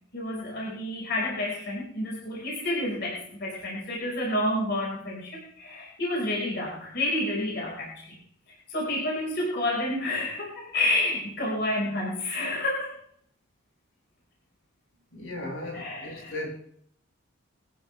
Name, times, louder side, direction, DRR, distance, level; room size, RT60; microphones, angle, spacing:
voice 1, 0.1-8.2 8.7-12.9 15.7-16.3, left 1 dB, 50° left, 5.2 m, -29 dB
voice 2, 15.1-16.5, left 1 dB, 80° left, 7.8 m, -36 dB
22.0 x 14.5 x 3.5 m
head